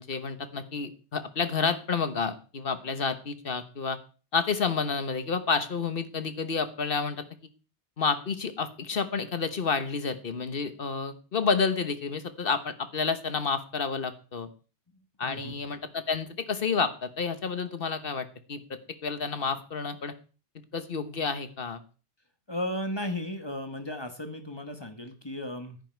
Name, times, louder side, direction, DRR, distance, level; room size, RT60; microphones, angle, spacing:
voice 1, 0.0-4.0 4.3-7.2 8.0-14.5 15.2-18.6 19.0-20.1 20.7-21.8, left 5 dB, 55° left, 11 dB, 1.4 m, -30 dB
voice 2, 15.2-15.6 22.5-25.8, left 1 dB, 25° left, 7 dB, 1.4 m, -35 dB
10.5 x 10.0 x 4.6 m, 0.37 s
omnidirectional pair, 1.2 m